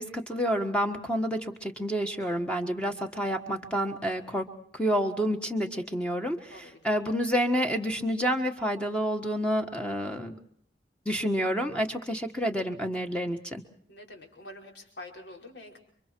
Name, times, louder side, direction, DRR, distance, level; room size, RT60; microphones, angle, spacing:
voice 1, 0.0-4.5 4.7-10.3 11.0-13.6, equal, 5° left, 4 dB, 1.5 m, -29 dB
voice 2, 6.5-6.9 12.1-12.3 13.9-15.8, left 1 dB, 65° left, 2 dB, 5.1 m, -46 dB
30.0 x 24.5 x 4.6 m, 0.62 s
head